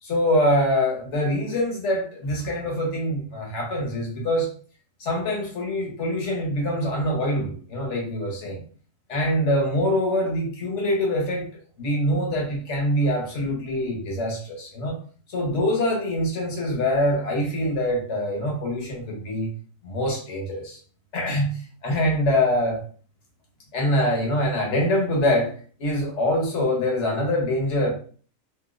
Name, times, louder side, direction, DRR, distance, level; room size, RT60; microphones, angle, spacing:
voice 1, 0.0-4.5 5.0-8.6 9.1-11.5 11.8-15.0 15.3-19.5 19.8-20.8 21.1-22.8 23.7-25.5 25.8-27.9, left 1 dB, 60° left, 0 dB, 1.3 m, -24 dB
3.1 x 2.7 x 2.4 m, 0.43 s
omnidirectional pair, 1.4 m